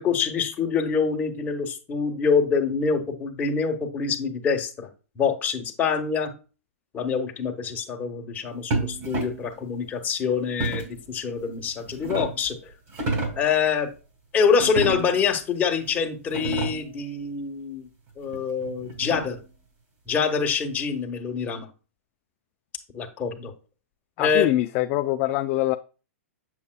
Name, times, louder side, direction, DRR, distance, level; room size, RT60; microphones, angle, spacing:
voice 1, 0.0-4.9 5.2-6.3 6.9-12.6 13.4-13.9 14.3-17.9 18.2-19.4 20.1-21.7 22.9-23.5 24.2-24.5, left 6 dB, 20° left, 1.3 m, -25 dB
sound 1, 8.7-9.5 10.6-11.0 11.7-12.5 12.9-13.5 14.6-15.3 15.9-16.0 16.2-17.0 18.3-19.5, right 3 dB, 35° right, 2.4 m, -30 dB
voice 2, 24.2-25.8, left 16 dB, 35° left, 0.4 m, -24 dB
7.6 x 6.9 x 2.3 m
hypercardioid pair, 140°, 8 cm